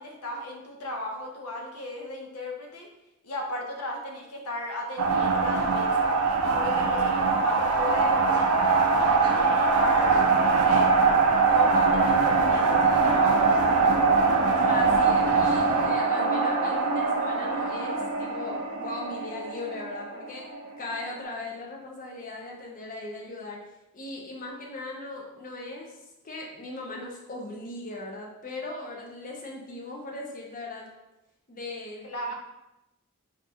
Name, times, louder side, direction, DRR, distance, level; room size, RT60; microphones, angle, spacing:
voice 1, 0.0-2.9 3.2-6.2 6.5-8.9 9.2-10.9 11.5-14.5 32.0-32.3, left 1 dB, 75° left, 1 dB, 0.7 m, -36 dB
sound 1, 5.0-20.8, right 4 dB, 70° right, 0.4 m, -23 dB
voice 2, 14.7-20.5 20.8-23.6 23.9-26.0 26.2-30.9 31.5-32.3, left 2 dB, 40° left, -1 dB, 0.6 m, -38 dB
2.6 x 2.3 x 4.1 m, 0.91 s
head